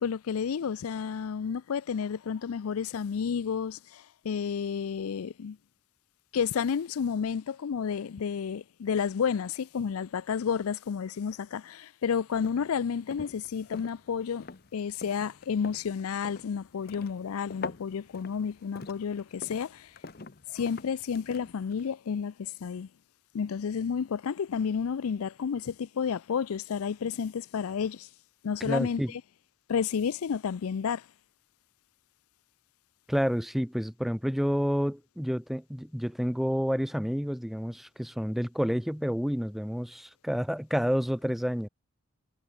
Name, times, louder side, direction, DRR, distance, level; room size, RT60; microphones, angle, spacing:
voice 1, 0.0-5.6 6.3-14.4 14.7-19.9 20.5-22.9 23.3-28.1 28.4-29.0 29.7-31.1, left 6 dB, 80° left, 0.4 m, -31 dB
sound 1, 12.3-21.9, left 4 dB, 45° left, 0.8 m, -45 dB
voice 2, 28.6-29.1 33.1-41.7, equal, ahead, 0.5 m, -29 dB
head